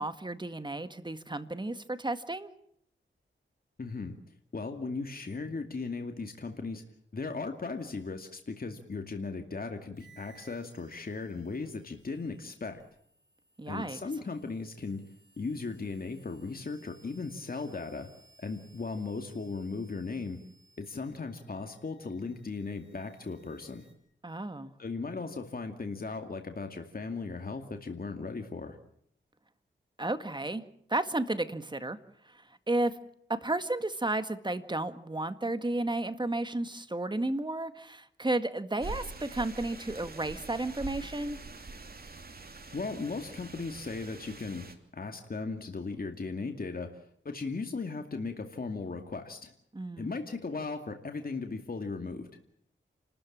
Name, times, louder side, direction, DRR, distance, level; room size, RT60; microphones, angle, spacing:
voice 1, 0.0-2.5 13.6-14.0 24.2-24.7 30.0-30.6 30.9-32.0 32.7-32.9 33.3-41.4 49.7-50.1, right 2 dB, 20° right, 11 dB, 1.9 m, -32 dB
voice 2, 3.8-4.2 4.5-6.8 7.1-12.8 13.7-15.0 15.4-18.1 18.4-20.4 20.8-23.8 24.8-28.8 42.7-49.5 50.0-52.3, left 4 dB, 45° left, 5 dB, 2.4 m, -37 dB
sound 1, 9.9-23.9, right 3 dB, 75° right, 6.2 m, -63 dB
sound 2, 38.8-44.7, right 3 dB, 50° right, 2.9 m, -44 dB
29.5 x 14.0 x 8.7 m, 0.70 s
cardioid pair, 65°, 20 cm